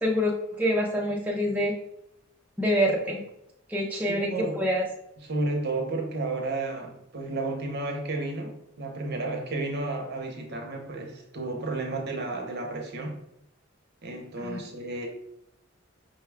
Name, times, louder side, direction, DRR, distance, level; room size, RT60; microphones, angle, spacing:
voice 1, 0.0-1.7 2.6-3.2 3.7-4.8 14.4-14.6, equal, 5° right, 0.4 m, -26 dB
voice 2, 3.9-4.6 5.2-13.2 14.0-15.1, right 2 dB, 50° right, 0.7 m, -32 dB
5.5 x 2.2 x 3.4 m
head